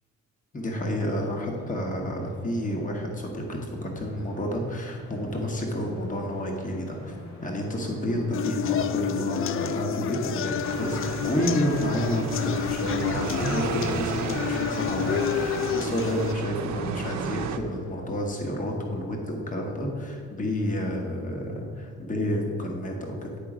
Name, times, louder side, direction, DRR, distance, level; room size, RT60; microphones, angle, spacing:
voice 1, 0.5-7.1 7.4-23.4, equal, 25° left, 1 dB, 1.3 m, -30 dB
sound 1, 0.6-19.1, equal, 65° left, 1.9 m, -48 dB
sound 2, 8.3-16.3, left 9 dB, 45° left, 0.4 m, -30 dB
sound 3, 10.6-17.6, right 5 dB, 70° right, 0.7 m, -33 dB
10.0 x 3.8 x 5.0 m, 2.3 s
cardioid pair, 90°, 30 cm